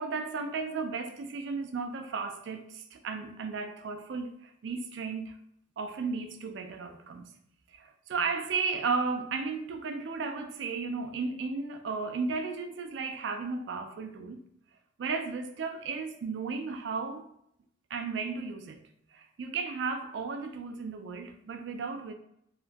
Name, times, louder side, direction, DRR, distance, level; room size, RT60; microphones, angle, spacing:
voice 1, 0.0-5.3 5.8-7.3 7.7-14.4 15.0-17.3 17.9-22.1, right 4 dB, 60° right, 0.3 m, -34 dB
2.8 x 2.3 x 2.5 m
head